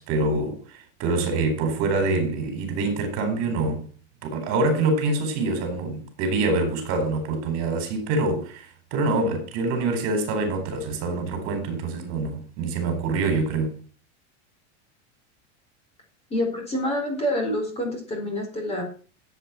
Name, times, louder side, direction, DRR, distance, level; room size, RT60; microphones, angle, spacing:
voice 1, 0.0-3.9 4.2-13.8, right 3 dB, 45° right, 4.4 m, -25 dB
voice 2, 16.3-18.8, left 1 dB, 15° left, 4.3 m, -27 dB
14.0 x 8.2 x 6.1 m
supercardioid pair, 175°, 35 cm